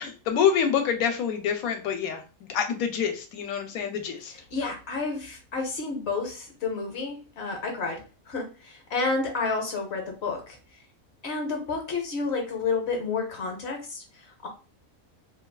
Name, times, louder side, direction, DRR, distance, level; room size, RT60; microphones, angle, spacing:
voice 1, 0.0-4.3, left 7 dB, 75° left, 5 dB, 1.0 m, -27 dB
voice 2, 4.5-10.6 11.2-14.5, left 4 dB, 60° left, 2 dB, 0.8 m, -30 dB
3.1 x 2.3 x 2.2 m, 0.33 s
omnidirectional pair, 1.5 m